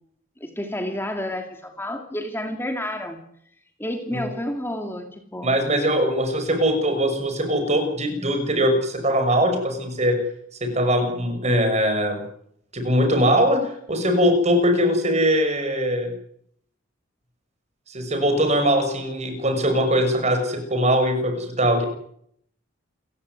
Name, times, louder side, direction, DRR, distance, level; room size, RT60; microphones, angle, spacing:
voice 1, 0.4-3.2 3.8-5.5, left 1 dB, 10° left, 5 dB, 2.5 m, -30 dB
voice 2, 5.4-10.1 10.6-12.2 12.7-13.6 13.9-16.1 17.9-21.8, equal, 35° right, 6 dB, 6.5 m, -21 dB
29.0 x 16.0 x 9.7 m, 0.70 s
head